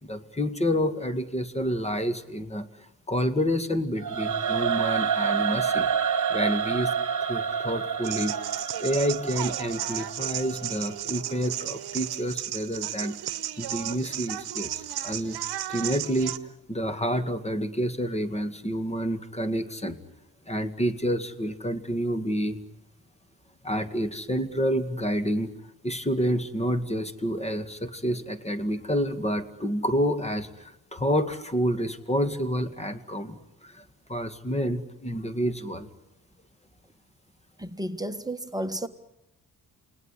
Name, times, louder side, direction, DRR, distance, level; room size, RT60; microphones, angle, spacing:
voice 1, 0.0-2.7 3.1-5.9 6.3-6.9 7.3-8.4 8.8-13.2 13.6-15.4 15.7-16.4 16.7-20.0 20.5-22.6 23.6-25.5 25.8-33.8 34.1-35.9, equal, 15° left, 2.0 m, -28 dB
Singing / Musical instrument, 4.0-11.1, right 7 dB, 50° right, 1.7 m, -28 dB
sound 1, 8.0-16.4, right 12 dB, 75° right, 1.0 m, -34 dB
voice 2, 37.6-38.9, right 1 dB, 10° right, 1.7 m, -32 dB
28.0 x 19.0 x 9.9 m
cardioid pair, 65°, 39 cm